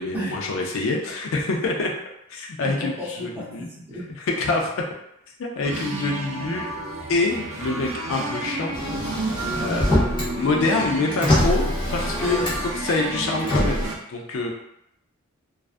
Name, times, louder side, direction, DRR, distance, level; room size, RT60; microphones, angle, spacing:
voice 1, 0.0-1.9 2.3-3.7 4.2-4.7 5.4-6.7 7.1-8.7 9.6-9.9 10.4-14.5, left 3 dB, 65° left, 0 dB, 0.4 m, -26 dB
voice 2, 2.6-3.5 3.7-4.1 12.2-12.5, equal, 10° right, -9 dB, 0.8 m, -33 dB
sound 1, 5.6-14.0, right 2 dB, 65° right, 0.4 m, -31 dB
Motor vehicle (road), 8.7-10.3 10.7-12.8 13.4-13.9, left 1 dB, 20° left, 0.7 m, -24 dB
2.3 x 2.2 x 2.4 m, 0.81 s
head